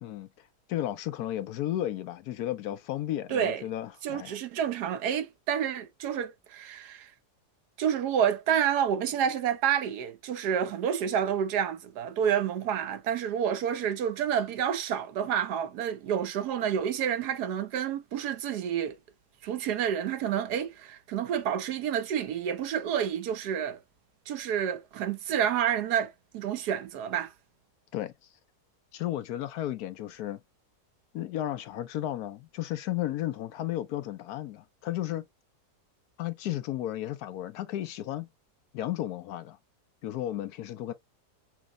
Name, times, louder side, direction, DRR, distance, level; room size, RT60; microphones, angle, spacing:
voice 1, 0.0-4.4 27.9-28.1 28.9-30.4 31.1-35.2 36.2-38.3 38.7-39.6 40.0-40.9, left 13 dB, 75° left, 1.1 m, -34 dB
voice 2, 3.3-3.6 4.0-7.1 7.8-19.0 19.4-23.8 24.3-27.3, right 9 dB, 80° right, 1.3 m, -29 dB
6.1 x 2.0 x 3.7 m
omnidirectional pair, 1.7 m